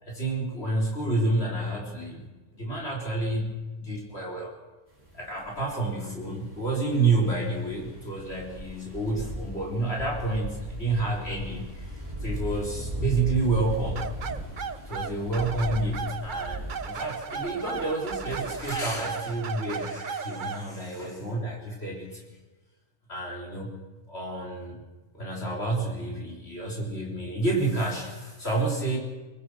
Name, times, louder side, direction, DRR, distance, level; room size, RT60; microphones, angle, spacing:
voice 1, 0.0-2.3 2.5-4.6 5.1-11.9 12.2-14.1 14.9-22.2 23.1-23.8 24.1-24.8 25.1-29.0, right 2 dB, 45° left, -1 dB, 4.2 m, -29 dB
sound 1, 5.0-18.7, right 1 dB, 25° right, 7.1 m, -38 dB
sound 2, 14.0-20.7, right 6 dB, 40° right, 0.8 m, -35 dB
23.0 x 21.5 x 6.3 m, 1.2 s
omnidirectional pair, 1.5 m